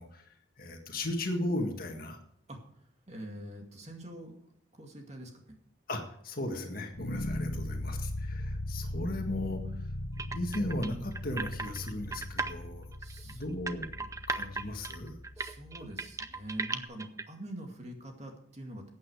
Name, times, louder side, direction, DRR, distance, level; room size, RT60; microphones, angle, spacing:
voice 1, 0.0-2.2 5.9-9.6 10.3-12.9 13.2-13.9 14.3-15.2, left 1 dB, 45° left, 3 dB, 1.8 m, -36 dB
voice 2, 3.1-4.4 4.7-5.6 7.3-7.8 13.0-13.6 14.0-14.2 15.4-18.9, right 1 dB, 35° right, 3 dB, 2.2 m, -45 dB
sound 1, 6.9-16.0, left 1 dB, 80° left, 1.2 m, -39 dB
sound 2, 10.2-12.5 12.9-17.2, right 3 dB, 15° right, 0.6 m, -36 dB
14.5 x 8.8 x 4.8 m, 0.67 s
head